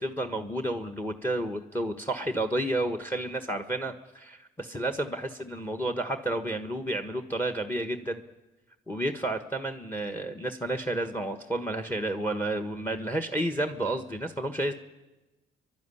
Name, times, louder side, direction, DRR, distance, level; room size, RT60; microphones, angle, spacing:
voice 1, 0.0-8.2 8.9-14.7, right 1 dB, 10° left, 8 dB, 1.4 m, -31 dB
29.5 x 12.0 x 9.9 m, 1.1 s
cardioid pair, 90°, 20 cm